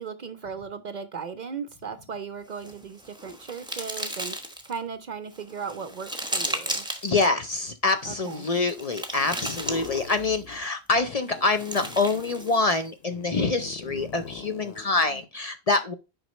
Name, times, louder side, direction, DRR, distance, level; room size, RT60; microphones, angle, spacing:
voice 1, 0.0-4.3 4.6-6.9 8.0-8.5, right 6 dB, 55° right, 0.6 m, -37 dB
sound 1, 2.5-4.8 5.3-7.3 8.2-10.3 11.3-12.9, right 1 dB, 5° right, 0.9 m, -35 dB
voice 2, 7.0-15.9, left 3 dB, 45° left, 0.6 m, -25 dB
sound 2, 9.4-10.6 10.9-15.3, left 6 dB, 85° left, 1.0 m, -42 dB
6.2 x 5.2 x 3.1 m
omnidirectional pair, 1.1 m